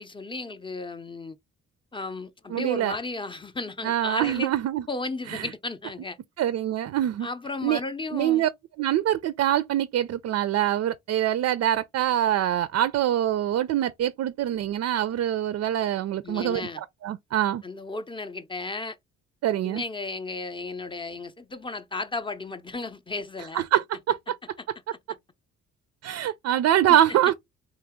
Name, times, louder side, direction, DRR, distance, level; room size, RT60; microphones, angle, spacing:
voice 1, 0.0-1.4 1.9-4.5 4.9-6.2 7.2-8.4 16.2-16.8 17.6-19.0 19.6-23.6 26.9-27.0, left 3 dB, 15° left, 0.5 m, -34 dB
voice 2, 2.5-3.0 3.8-4.8 5.3-5.5 6.4-7.3 7.6-7.8 8.1-8.5 8.8-17.6 19.4-19.8 23.5-24.4 26.0-27.4, right 11 dB, 55° right, 0.4 m, -24 dB
3.8 x 2.9 x 3.5 m
cardioid pair, 90°, 30 cm